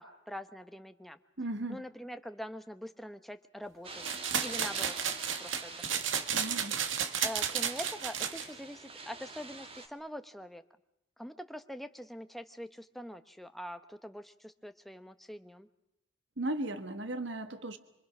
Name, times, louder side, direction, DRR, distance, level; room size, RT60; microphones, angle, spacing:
voice 1, 0.0-1.2 1.7-4.0 4.4-6.1 7.2-10.6 11.2-15.7, equal, ahead, 9 dB, 0.9 m, -44 dB
voice 2, 1.4-1.8 6.3-6.8 16.4-17.8, right 1 dB, 70° right, 9 dB, 1.6 m, -36 dB
sound 1, 3.8-9.9, right 3 dB, 30° right, 1.8 m, -45 dB
sound 2, 4.0-8.5, right 8 dB, 85° right, 1.9 m, -33 dB
26.5 x 25.0 x 6.1 m, 0.85 s
head